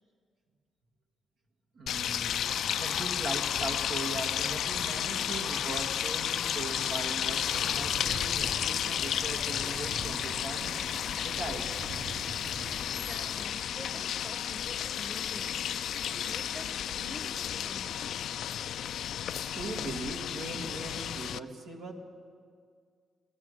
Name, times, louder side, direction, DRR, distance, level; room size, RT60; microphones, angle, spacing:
voice 1, 1.7-10.8 11.2-11.7 19.4-21.9, right 3 dB, 80° right, 1.8 m, -40 dB
sound 1, 1.9-21.4, left 10 dB, 75° left, 0.3 m, -32 dB
sound 2, 2.4-17.3, left 4 dB, 35° left, 0.6 m, -47 dB
sound 3, 7.4-13.5, right 3 dB, 45° right, 1.2 m, -44 dB
voice 2, 12.9-18.2, left 1 dB, 10° right, 1.1 m, -47 dB
17.0 x 13.0 x 6.3 m
cardioid pair, 70°, 0 cm